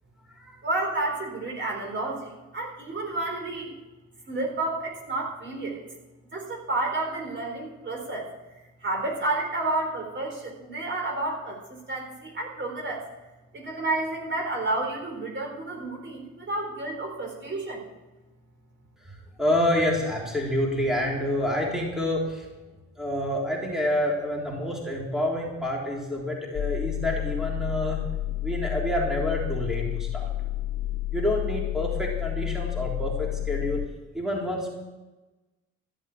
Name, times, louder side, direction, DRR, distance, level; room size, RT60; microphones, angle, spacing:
voice 1, 0.6-3.7 4.3-5.8 6.3-8.3 8.8-13.0 13.5-17.8, right 2 dB, 40° right, 1 dB, 4.2 m, -30 dB
voice 2, 19.0-22.5 23.0-28.0 28.4-30.3 31.1-33.8 34.1-34.7, left 1 dB, ahead, -2 dB, 3.6 m, -28 dB
sound 1, 26.5-33.9, left 15 dB, 50° left, 0.6 m, -30 dB
14.5 x 8.3 x 8.5 m, 1.1 s
cardioid pair, 90°, 30 cm